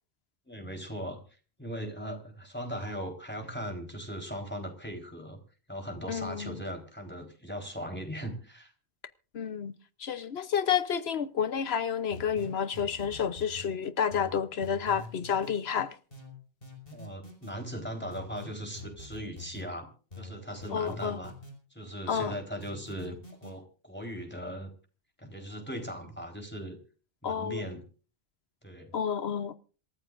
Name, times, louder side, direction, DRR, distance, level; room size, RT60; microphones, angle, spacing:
voice 1, 0.5-1.2 1.6-5.4 5.7-8.7 16.9-19.9 20.2-21.3 21.7-24.7 25.2-26.8 27.2-27.8 28.6-28.9, equal, 10° left, 4.0 m, -39 dB
voice 2, 6.1-6.6 9.3-9.7 10.0-16.0 20.7-21.2 22.1-22.3 27.2-27.6 28.9-29.6, left 7 dB, 75° left, 1.1 m, -30 dB
sound 1, 12.1-13.7 14.1-15.6 16.1-17.5 18.1-19.7 20.1-21.6 22.1-23.5, left 2 dB, 60° left, 5.7 m, -45 dB
27.0 x 14.0 x 2.6 m
omnidirectional pair, 1.1 m